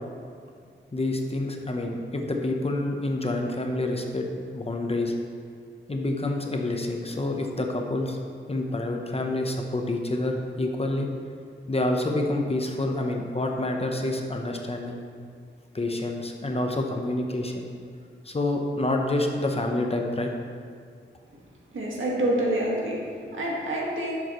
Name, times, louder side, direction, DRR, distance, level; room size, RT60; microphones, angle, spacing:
voice 1, 0.9-5.1 5.9-8.2 8.5-11.1 11.7-15.0 15.7-17.7 18.2-20.3, left 2 dB, 30° left, 2 dB, 0.9 m, -28 dB
voice 2, 21.7-23.0 23.3-24.2, right 1 dB, 85° right, -4 dB, 1.9 m, -27 dB
10.5 x 7.4 x 3.1 m, 2.1 s
wide cardioid pair, 105°, 20 cm